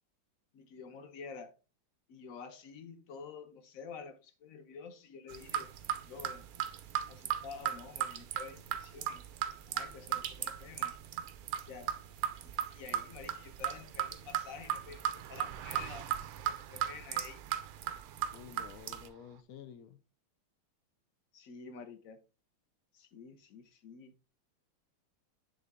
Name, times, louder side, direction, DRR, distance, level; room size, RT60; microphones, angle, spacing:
voice 1, 0.5-1.5 2.1-5.7 6.0-6.4 7.1-9.2 9.7-10.9 11.7-12.0 12.6-16.1 16.4-17.5 21.3-22.2 22.9-24.1, left 5 dB, 55° left, 1.0 m, -49 dB
sound 1, 5.3-19.1, right 10 dB, 70° right, 0.9 m, -37 dB
Car passing by, 12.6-19.4, right 12 dB, 90° right, 1.5 m, -52 dB
voice 2, 18.3-20.0, left 8 dB, 80° left, 0.8 m, -51 dB
9.6 x 3.6 x 3.5 m
omnidirectional pair, 2.3 m